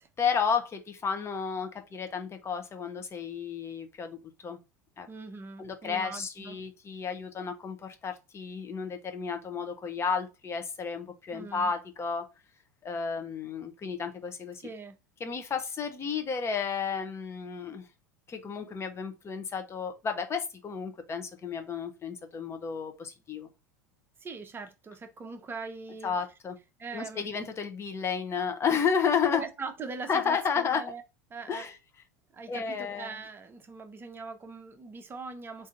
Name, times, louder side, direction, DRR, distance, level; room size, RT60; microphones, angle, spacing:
voice 1, 0.2-4.6 5.0-5.1 5.6-12.2 12.8-14.6 15.2-17.9 18.3-23.5 26.0-26.6 26.9-29.4 30.1-30.9 31.5-31.7 32.5-33.1, left 6 dB, 25° left, 0.8 m, -32 dB
voice 2, 5.1-6.6 11.3-11.7 14.6-15.0 24.2-26.1 26.8-27.3 29.3-31.0 31.3-31.7 32.3-35.7, right 4 dB, 20° right, 0.7 m, -41 dB
3.7 x 2.7 x 3.5 m
figure-of-eight pair, 80°, 10 cm